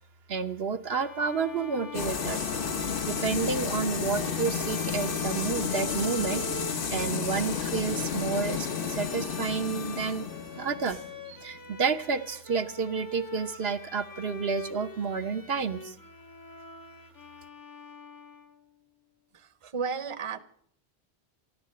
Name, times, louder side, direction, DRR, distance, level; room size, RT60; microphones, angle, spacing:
voice 1, 0.3-2.5 2.8-10.3 10.5-11.0 11.3-16.0, right 5 dB, 70° right, 8 dB, 1.0 m, -30 dB
Bowed string instrument, 0.9-18.7, left 1 dB, 25° left, 0.6 m, -44 dB
sound 1, 1.9-11.6, left 6 dB, 55° left, 1.2 m, -32 dB
sound 2, 10.6-11.2 11.5-11.7, left 1 dB, 75° left, 3.5 m, -52 dB
voice 2, 19.3-20.4, right 6 dB, 30° right, 13 dB, 0.8 m, -34 dB
14.0 x 13.0 x 7.7 m, 0.62 s
omnidirectional pair, 1.1 m